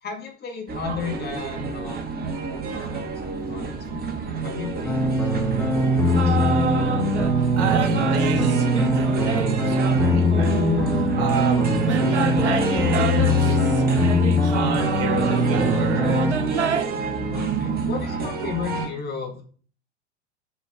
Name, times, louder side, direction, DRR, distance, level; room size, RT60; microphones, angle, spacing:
voice 1, 0.0-2.3 2.7-3.1 3.5-4.0 4.4-5.1 5.4-6.6 15.0-16.3 17.3-19.4, left 6 dB, 30° left, 2 dB, 1.7 m, -34 dB
sound 1, 0.7-18.9, right 4 dB, 25° right, 1.8 m, -28 dB
sound 2, 4.8-16.3, left 1 dB, 5° left, 1.9 m, -22 dB
sound 3, 6.1-7.4 7.7-11.3 11.8-16.8, right 6 dB, 85° right, 0.7 m, -29 dB
voice 2, 7.6-10.5 10.9-13.6 14.4-16.3, right 6 dB, 50° right, 1 dB, 2.9 m, -31 dB
7.4 x 5.1 x 3.6 m, 0.43 s
figure-of-eight pair, 85°, 34 cm